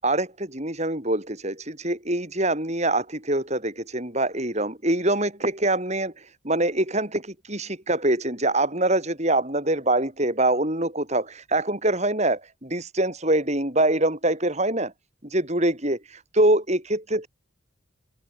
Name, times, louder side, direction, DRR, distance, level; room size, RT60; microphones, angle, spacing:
voice 1, 0.0-14.9 15.2-17.3, right 1 dB, 35° right, 7.6 m, -24 dB
head